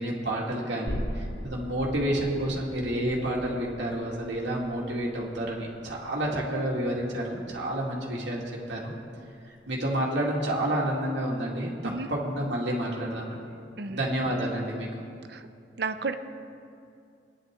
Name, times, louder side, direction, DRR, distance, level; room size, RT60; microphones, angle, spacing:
voice 1, 0.0-8.4 8.7-8.9 9.7-11.7 12.1-13.4 13.9-15.0, right 1 dB, 80° right, -3 dB, 2.3 m, -29 dB
sound 1, 0.9-8.1 8.5-8.6, equal, 50° left, 1.5 m, -40 dB
voice 2, 15.8-16.1, right 4 dB, 60° right, 9 dB, 0.7 m, -32 dB
22.5 x 10.0 x 3.8 m, 2.5 s
head